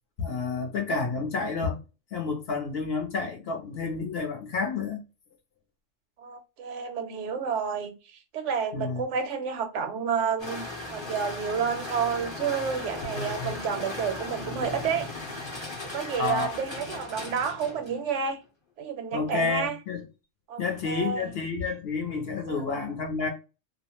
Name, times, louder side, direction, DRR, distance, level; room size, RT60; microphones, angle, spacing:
voice 1, 0.2-1.8 2.1-5.0 8.7-9.0 13.0-13.5 16.2-16.5 19.1-20.1 20.6-23.3, left 4 dB, 60° left, 0.8 m, -30 dB
voice 2, 6.2-7.9 8.3-15.1 15.8-18.4 18.8-19.8 20.5-21.3 22.5-22.6, right 6 dB, 70° right, 0.9 m, -30 dB
sound 1, 10.4-18.0, left 2 dB, 25° left, 0.7 m, -37 dB
2.4 x 2.1 x 2.8 m
omnidirectional pair, 1.3 m